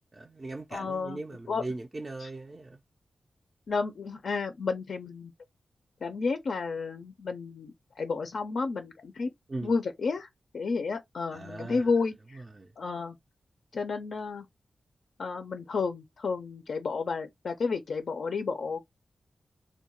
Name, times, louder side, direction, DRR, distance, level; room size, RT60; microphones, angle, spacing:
voice 1, 0.1-2.8 9.5-9.7 11.3-11.9 12.4-12.7, right 2 dB, 30° right, 0.3 m, -39 dB
voice 2, 0.7-1.2 1.5-1.6 2.2-2.3 3.7-5.3 6.0-9.3 9.6-10.3 10.5-12.4 12.8-13.2 13.7-14.5 15.2-18.8, left 4 dB, 70° left, 0.3 m, -31 dB
2.2 x 2.1 x 2.8 m
wide cardioid pair, 100°, 0 cm